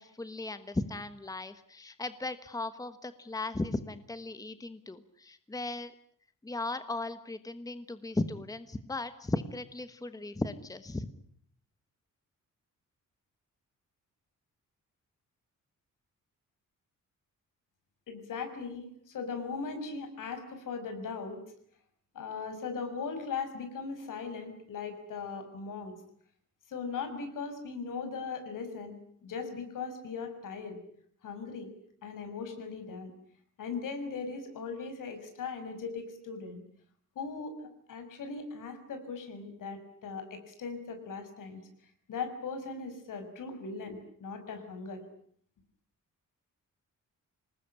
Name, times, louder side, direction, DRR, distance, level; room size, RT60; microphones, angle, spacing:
voice 1, 0.0-5.9 6.4-11.1, left 2 dB, 10° left, 11 dB, 1.2 m, -36 dB
voice 2, 18.1-21.4 22.1-25.9 26.7-30.8 31.2-31.7 32.0-33.1 33.6-36.6 37.1-41.7 42.1-45.0, left 5 dB, 80° left, 8 dB, 6.1 m, -39 dB
27.0 x 19.5 x 10.0 m, 0.64 s
wide cardioid pair, 160°, 32 cm